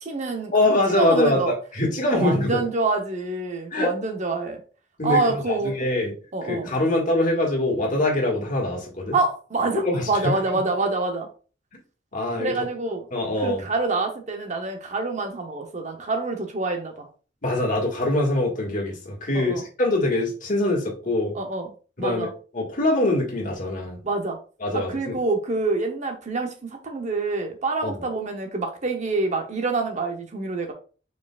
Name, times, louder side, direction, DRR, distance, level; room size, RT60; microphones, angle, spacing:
voice 1, 0.0-1.5 2.1-4.6 5.0-5.7 6.3-6.7 9.1-11.3 12.4-13.1 13.4-17.1 19.3-19.6 21.3-21.7 22.0-22.3 24.0-24.4 24.7-30.7, right 3 dB, 40° right, 4 dB, 0.8 m, -26 dB
voice 2, 0.5-2.6 3.7-3.9 5.0-6.1 6.4-9.2 9.7-10.6 12.1-12.5 13.1-13.6 17.4-21.3 22.0-22.3 22.5-24.0 24.6-25.2 27.8-27.9, left 1 dB, 45° left, -1 dB, 1.8 m, -23 dB
4.8 x 4.7 x 2.4 m, 0.37 s
head